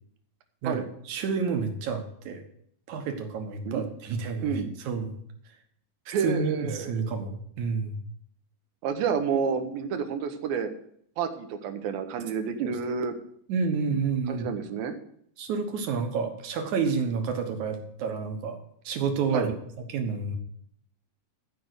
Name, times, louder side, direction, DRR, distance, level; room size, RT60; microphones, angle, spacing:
voice 1, 0.6-2.4 2.9-5.2 6.1-8.0 12.6-12.7 13.5-14.5 15.4-18.6 18.8-19.5 19.9-20.4, right 5 dB, 65° right, 5 dB, 2.4 m, -29 dB
voice 2, 6.1-7.1 8.8-10.7 11.2-13.1 14.3-15.0 19.3-19.5, right 6 dB, 80° right, 8 dB, 2.8 m, -29 dB
13.5 x 5.5 x 8.0 m, 0.67 s
omnidirectional pair, 4.2 m